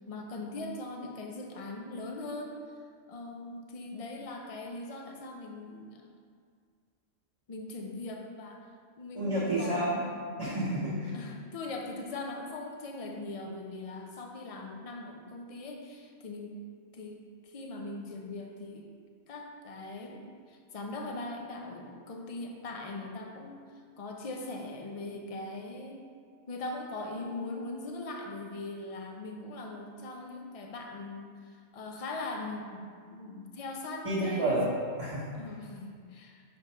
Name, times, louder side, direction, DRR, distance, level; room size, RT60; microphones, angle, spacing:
voice 1, 0.1-2.6 3.1-6.1 7.5-8.6 9.0-9.8 11.1-16.6 16.9-18.9 19.3-20.2 20.5-23.6 24.0-26.0 26.5-34.6 35.3-36.4, left 2 dB, 40° left, 2 dB, 0.5 m, -40 dB
voice 2, 9.1-10.0 10.4-11.1 34.0-34.7 35.0-35.3, right 1 dB, 30° right, -11 dB, 1.0 m, -29 dB
6.4 x 3.4 x 4.3 m, 2.1 s
omnidirectional pair, 1.2 m